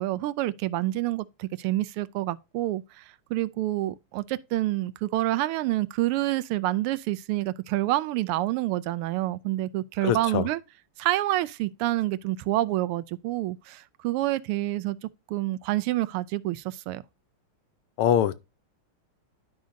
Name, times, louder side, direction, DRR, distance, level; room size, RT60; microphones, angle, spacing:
voice 1, 0.0-3.0 3.3-10.6 11.0-17.0, right 16 dB, 85° right, 1.5 m, -28 dB
voice 2, 10.0-10.5 18.0-18.4, left 10 dB, 80° left, 1.6 m, -23 dB
11.5 x 5.0 x 2.6 m
omnidirectional pair, 2.4 m